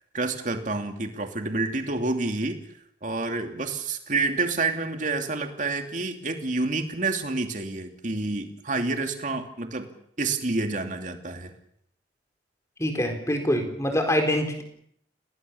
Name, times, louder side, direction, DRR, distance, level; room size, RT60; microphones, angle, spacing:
voice 1, 0.1-2.6 3.0-9.9 10.2-11.5, right 3 dB, 40° right, 5 dB, 2.8 m, -28 dB
voice 2, 12.8-14.6, left 1 dB, 15° left, 4 dB, 4.4 m, -25 dB
28.5 x 19.5 x 7.1 m, 0.69 s
head